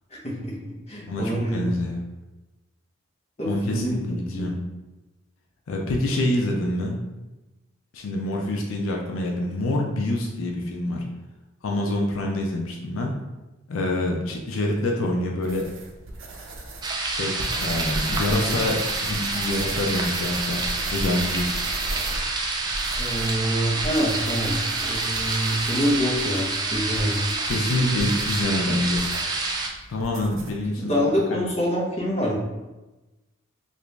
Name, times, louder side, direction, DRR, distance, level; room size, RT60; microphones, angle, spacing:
voice 1, 0.1-1.6 3.4-4.0 4.3-4.5 23.0-27.2 27.7-27.8 30.8-32.4, equal, 35° left, -6 dB, 0.8 m, -26 dB
voice 2, 1.1-2.0 3.4-4.6 5.7-7.1 7.9-11.0 11.6-13.1 13.7-15.7 17.1-20.6 20.9-21.5 27.4-29.0 29.9-31.0 31.3-31.5, left 1 dB, 85° left, 0 dB, 0.5 m, -26 dB
sound 1, 15.4-30.6, right 1 dB, 75° right, 0.5 m, -36 dB
sound 2, 16.8-29.7, right 3 dB, 20° right, 0.3 m, -28 dB
2.9 x 2.6 x 3.3 m, 1.1 s
head